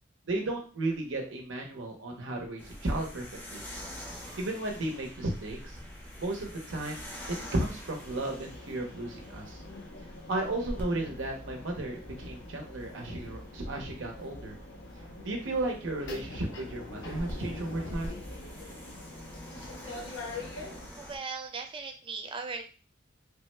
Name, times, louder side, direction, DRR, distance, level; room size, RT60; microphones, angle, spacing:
voice 1, 0.3-3.2 3.5-3.6 4.4-5.8 6.2-7.0 7.5-9.6 10.3-14.6 15.2-18.1, right 2 dB, 80° right, 1 dB, 0.7 m, -34 dB
sound 1, 2.6-21.2, equal, 10° left, 0.7 m, -45 dB
sound 2, 7.9-20.9, left 2 dB, 80° left, 0.8 m, -44 dB
voice 2, 21.0-22.6, right 4 dB, 25° right, 5 dB, 0.4 m, -38 dB
3.3 x 2.1 x 3.1 m, 0.36 s
head